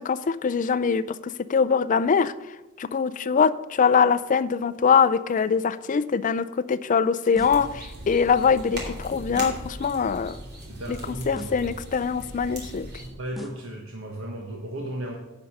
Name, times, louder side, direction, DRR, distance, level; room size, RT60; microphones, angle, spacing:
voice 1, 0.0-2.3 2.8-10.4 10.9-11.0 11.3-12.9, left 6 dB, 40° left, 15 dB, 0.4 m, -23 dB
sound 1, 7.3-7.7 9.4-9.7 11.3-11.7 13.4-13.7, equal, ahead, 0.8 m, -41 dB
sound 2, 7.4-13.1, right 1 dB, 50° right, 2.7 m, -39 dB
voice 2, 10.7-11.7 13.2-15.1, right 1 dB, 65° right, -1 dB, 1.4 m, -35 dB
10.5 x 5.5 x 6.4 m, 1.1 s
head